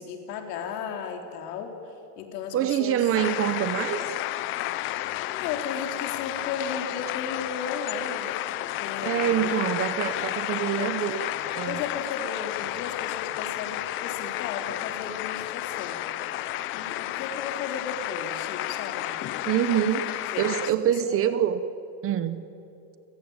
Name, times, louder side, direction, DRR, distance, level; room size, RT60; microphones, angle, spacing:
voice 1, 0.0-1.7 2.2-3.1 5.3-9.7 10.8-11.0 11.7-16.1 16.7-19.1 20.3-20.4 20.8-21.3, left 6 dB, 75° left, 4 dB, 3.9 m, -35 dB
voice 2, 2.5-4.1 9.0-11.2 11.5-11.8 19.5-21.6 22.0-22.4, right 10 dB, 30° right, 13 dB, 0.8 m, -25 dB
sound 1, 3.1-20.7, left 15 dB, 25° left, 0.5 m, -32 dB
30.0 x 16.0 x 8.9 m, 2.8 s
supercardioid pair, 150°, 48 cm